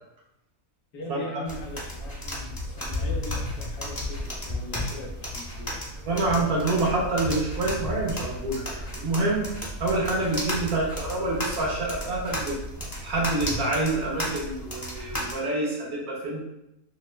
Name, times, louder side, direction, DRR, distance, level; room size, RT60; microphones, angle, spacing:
voice 1, 0.9-5.7, left 1 dB, 90° left, -1 dB, 1.3 m, -40 dB
sound 1, 1.5-15.3, left 1 dB, 25° left, 0.5 m, -34 dB
voice 2, 6.1-12.6 13.0-16.4, right 2 dB, 75° right, -3 dB, 1.5 m, -27 dB
sound 2, 8.1-13.6, right 3 dB, 60° right, 0.4 m, -42 dB
6.1 x 2.2 x 2.2 m, 0.87 s
omnidirectional pair, 1.5 m